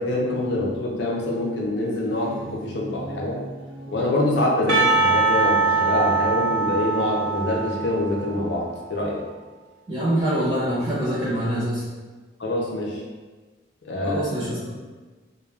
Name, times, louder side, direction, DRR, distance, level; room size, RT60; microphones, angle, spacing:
voice 1, 0.0-3.4 3.9-9.2 12.4-13.0 13.8-14.2, left 1 dB, 70° left, -2 dB, 0.6 m, -25 dB
sound 1, 1.9-7.9, right 1 dB, 70° right, 0.4 m, -41 dB
Percussion, 4.7-8.6, right 3 dB, 90° right, 0.7 m, -22 dB
voice 2, 9.9-11.8 14.0-14.7, right 1 dB, 20° right, -10 dB, 0.6 m, -24 dB
2.4 x 2.2 x 3.3 m, 1.3 s
head